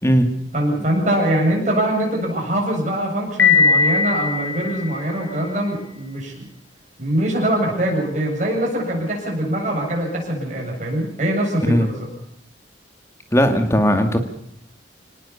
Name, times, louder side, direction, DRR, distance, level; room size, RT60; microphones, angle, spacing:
voice 1, 0.5-6.5 7.0-12.1, right 1 dB, 40° right, -1 dB, 7.6 m, -23 dB
Piano, 3.4-5.3, left 5 dB, 80° left, 6.0 m, -19 dB
voice 2, 13.3-14.2, equal, 15° left, 6 dB, 2.2 m, -17 dB
25.0 x 19.0 x 7.2 m, 0.70 s
head